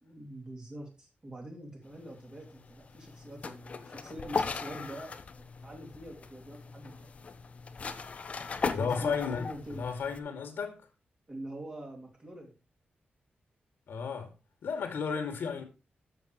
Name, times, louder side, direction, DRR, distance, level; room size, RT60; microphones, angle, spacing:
voice 1, 0.0-7.1 8.6-9.9 11.3-12.6, right 1 dB, 25° right, 2.8 m, -45 dB
sound 1, 1.9-10.2, left 4 dB, 40° left, 0.8 m, -39 dB
voice 2, 8.7-10.8 13.9-14.3 14.6-15.7, left 6 dB, 90° left, 2.3 m, -33 dB
12.5 x 6.8 x 3.1 m
wide cardioid pair, 180°, 3 cm